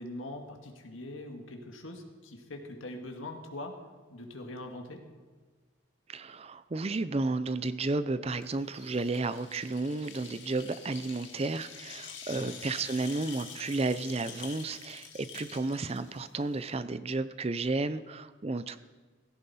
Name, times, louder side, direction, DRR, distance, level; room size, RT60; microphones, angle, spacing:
voice 1, 0.0-3.8 4.1-5.0 12.3-12.6, left 1 dB, 80° left, 3 dB, 1.8 m, -42 dB
voice 2, 6.1-18.8, right 3 dB, 30° right, 13 dB, 0.5 m, -32 dB
sound 1, 8.3-16.7, left 7 dB, 65° left, 2.0 m, -47 dB
16.0 x 14.0 x 4.2 m, 1.4 s
head